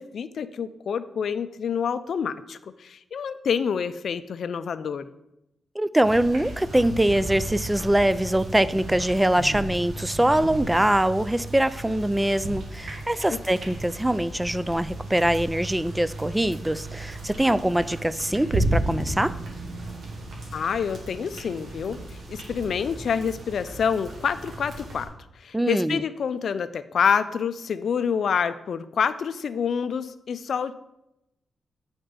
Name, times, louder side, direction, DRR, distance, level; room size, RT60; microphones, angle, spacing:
voice 1, 0.0-5.1 20.5-25.1 25.4-30.7, left 7 dB, 70° left, 12 dB, 0.4 m, -27 dB
voice 2, 5.8-19.3 25.5-26.0, right 1 dB, 10° right, 15 dB, 0.3 m, -23 dB
sound 1, 6.0-25.1, right 2 dB, 65° right, 1.5 m, -34 dB
8.0 x 4.3 x 5.1 m, 0.86 s
cardioid pair, 100°, 0 cm